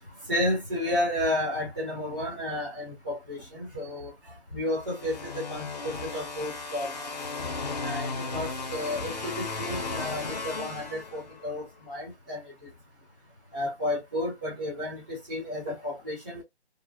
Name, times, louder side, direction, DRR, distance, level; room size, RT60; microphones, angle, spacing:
voice 1, 0.3-4.1 4.5-7.1 7.8-12.4 13.5-16.4, left 1 dB, 10° right, 0.6 m, -32 dB
sound 1, 4.9-11.5, left 3 dB, 40° left, 0.6 m, -35 dB
2.7 x 2.1 x 2.2 m
figure-of-eight pair, 155°, 33 cm